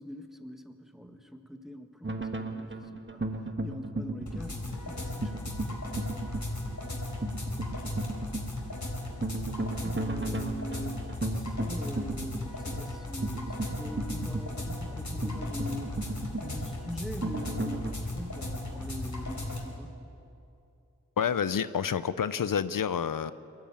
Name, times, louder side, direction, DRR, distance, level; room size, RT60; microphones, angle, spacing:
voice 1, 0.0-5.7 9.8-11.1 11.3-19.9, equal, ahead, 7 dB, 1.6 m, -43 dB
sound 1, 2.0-17.9, right 2 dB, 35° right, 1.4 m, -36 dB
sound 2, 4.3-19.6, left 1 dB, 60° left, 3.8 m, -36 dB
voice 2, 21.2-23.3, left 7 dB, 85° left, 15 dB, 0.6 m, -28 dB
22.5 x 14.0 x 8.8 m, 2.7 s
wide cardioid pair, 45°, 32 cm